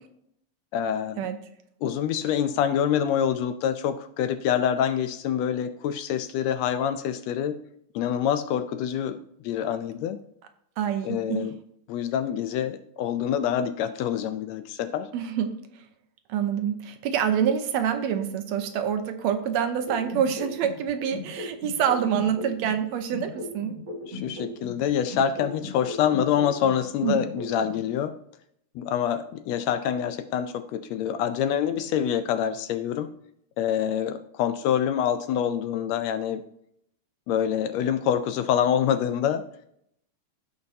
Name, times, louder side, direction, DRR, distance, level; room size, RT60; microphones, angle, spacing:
voice 1, 0.7-1.3 1.8-7.6 7.9-10.2 11.0-11.6 11.9-15.1 24.1-28.1 28.7-33.1 33.6-36.4 37.3-39.4, left 9 dB, 80° left, 10 dB, 1.6 m, -26 dB
voice 2, 10.8-11.5 15.1-15.8 16.3-23.8 27.0-27.2, right 8 dB, 75° right, 7 dB, 1.8 m, -26 dB
sound 1, 19.9-22.8 23.1-26.8 27.1-27.8, left 2 dB, 40° right, 1.5 m, -37 dB
16.0 x 5.4 x 2.7 m, 0.72 s
omnidirectional pair, 3.4 m